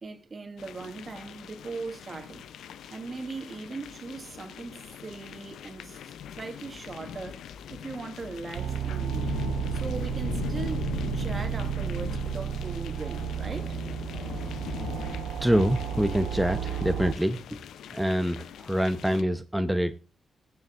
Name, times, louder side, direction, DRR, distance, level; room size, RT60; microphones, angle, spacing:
voice 1, 0.0-6.0 6.3-9.3 9.7-10.9 11.1-13.8 14.1-14.2, right 4 dB, 45° right, 2.0 m, -39 dB
sound 1, 0.6-19.2, left 8 dB, 85° left, 0.6 m, -40 dB
sound 2, 8.5-17.1, right 9 dB, 80° right, 0.4 m, -32 dB
voice 2, 15.4-17.4 17.9-19.9, equal, 5° right, 0.9 m, -25 dB
20.5 x 7.0 x 2.5 m
cardioid pair, 60°, 0 cm